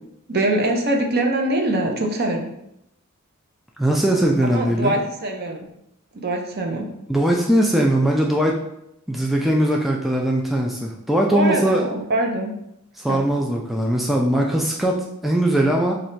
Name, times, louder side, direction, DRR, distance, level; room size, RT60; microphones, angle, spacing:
voice 1, 0.3-2.5 4.4-5.7 6.1-6.9 11.3-12.5 13.1-13.2, right 1 dB, 50° right, 2 dB, 0.6 m, -23 dB
voice 2, 3.8-5.0 7.1-8.5 9.1-11.9 13.0-15.9, right 1 dB, ahead, -1 dB, 0.3 m, -20 dB
3.1 x 2.6 x 4.4 m, 0.80 s
head